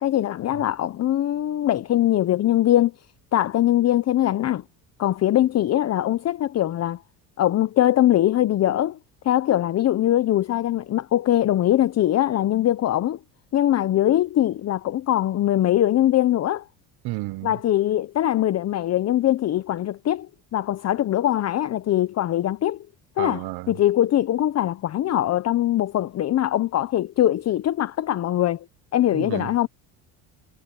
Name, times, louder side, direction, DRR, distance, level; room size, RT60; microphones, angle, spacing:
voice 1, 0.0-2.9 3.3-4.6 5.0-7.0 7.4-9.0 9.2-13.2 13.5-16.7 17.4-22.8 23.2-28.7 28.9-29.7, left 12 dB, 40° left, 0.8 m, -22 dB
voice 2, 17.0-17.6 23.2-23.8 29.1-29.5, right 20 dB, 70° right, 1.0 m, -32 dB
cardioid pair, 110°, 39 cm